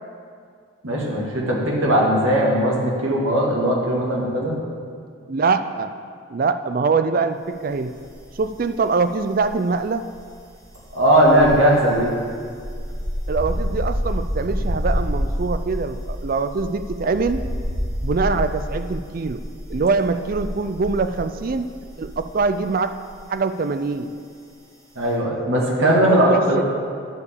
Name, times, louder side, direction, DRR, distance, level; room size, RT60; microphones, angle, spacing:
voice 1, 0.8-4.5 10.9-12.1 25.0-26.6, right 1 dB, 80° right, -2 dB, 1.8 m, -18 dB
voice 2, 5.3-5.9 6.3-7.9 8.4-10.1 13.3-17.4 18.0-19.4 19.7-21.7 22.0-22.9 23.3-24.1 25.8-26.6, right 4 dB, 45° right, 10 dB, 0.4 m, -23 dB
sound 1, 8.0-8.8 9.0-22.6 22.8-23.1, equal, 20° right, 1.6 m, -28 dB
10.5 x 4.9 x 6.9 m, 2.2 s
head